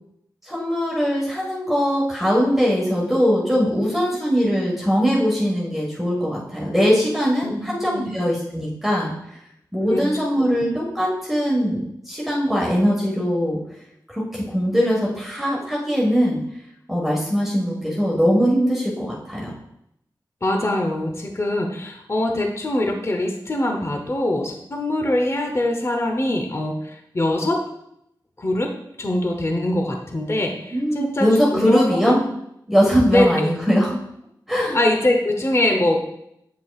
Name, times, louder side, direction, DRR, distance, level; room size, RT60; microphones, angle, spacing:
voice 1, 0.4-9.1 9.7-13.6 14.1-16.4 16.9-19.5 30.7-32.2 32.7-34.0 34.5-34.8, equal, 5° right, -5 dB, 1.5 m, -21 dB
voice 2, 7.4-8.2 9.9-10.1 20.4-27.6 28.4-28.7 29.0-32.2 33.1-33.5 34.7-36.1, left 1 dB, 35° left, 2 dB, 0.8 m, -23 dB
7.7 x 5.8 x 2.4 m, 0.79 s
wide cardioid pair, 60°, 8 cm